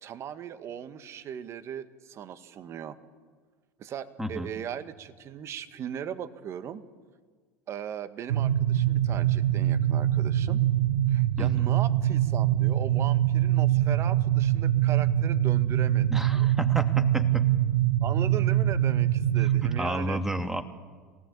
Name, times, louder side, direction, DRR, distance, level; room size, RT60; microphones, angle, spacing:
voice 1, 0.0-3.0 3.8-6.8 7.7-10.6 11.1-16.5 18.0-20.2, right 9 dB, 45° right, 11 dB, 1.8 m, -38 dB
voice 2, 4.2-4.5 11.4-11.7 16.1-17.5 19.8-20.6, right 1 dB, 5° right, 7 dB, 2.7 m, -31 dB
sound 1, 8.3-19.8, right 12 dB, 80° right, 0.9 m, -24 dB
26.0 x 18.5 x 8.6 m, 1.5 s
hypercardioid pair, 80°, 7 cm